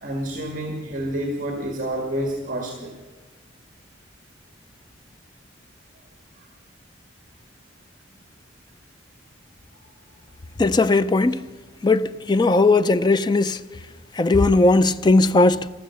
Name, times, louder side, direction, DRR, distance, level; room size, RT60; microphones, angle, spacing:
voice 1, 0.0-2.9 6.4-6.5, right 1 dB, 40° right, 1.7 m, -29 dB
voice 2, 10.6-11.4 11.8-13.6 14.2-15.7, left 2 dB, 20° left, 0.4 m, -18 dB
14.0 x 12.5 x 7.1 m
head